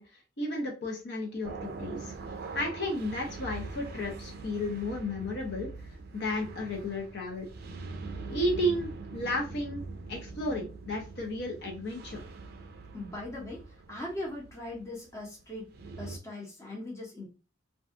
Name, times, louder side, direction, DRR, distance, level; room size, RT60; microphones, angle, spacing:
voice 1, 0.0-2.1 2.5-5.7 6.1-7.5 8.3-9.8 10.1-12.2, left 1 dB, 55° left, 0 dB, 0.7 m, -33 dB
sound 1, 1.4-16.2, right 3 dB, 50° right, 0.4 m, -43 dB
voice 2, 12.9-15.7 16.0-17.3, left 1 dB, 15° left, -3 dB, 0.7 m, -40 dB
2.6 x 2.3 x 2.4 m, 0.32 s
head